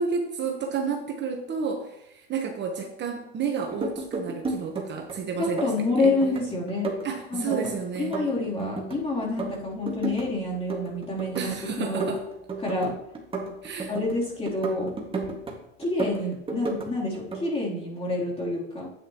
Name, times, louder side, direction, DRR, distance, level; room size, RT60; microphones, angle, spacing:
voice 1, 0.0-5.7 6.0-6.1 7.0-8.1 11.3-12.2 13.6-13.9, right 5 dB, 35° right, 3 dB, 1.1 m, -31 dB
sound 1, 3.6-5.1 5.4-6.4 6.7-9.0 9.2-10.3 10.5-11.6 11.8-14.1 14.5-15.5 15.8-16.9 17.1-17.5, right 3 dB, 15° right, 1.8 m, -32 dB
voice 2, 5.4-6.9 7.3-7.7 8.0-12.1 12.6-12.9 13.9-14.9 15.8-18.9, left 2 dB, 20° left, -4 dB, 3.2 m, -28 dB
9.8 x 8.8 x 3.0 m, 0.82 s
supercardioid pair, 105°, 30 cm